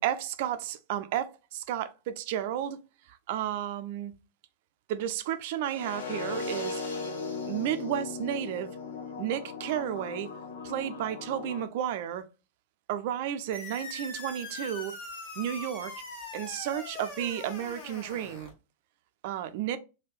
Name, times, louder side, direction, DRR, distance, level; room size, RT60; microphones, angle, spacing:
voice 1, 0.0-2.8 3.3-4.1 4.9-6.8 7.5-8.7 9.2-10.3 10.6-12.2 12.9-14.9 15.4-15.9 16.3-18.5 19.2-19.8, right 11 dB, 50° right, 0.4 m, -32 dB
sound 1, 5.6-11.6, left 4 dB, 70° left, 0.8 m, -37 dB
sound 2, 13.5-18.5, left 3 dB, 50° left, 1.3 m, -42 dB
3.4 x 2.3 x 3.1 m
figure-of-eight pair, 90°, 0 cm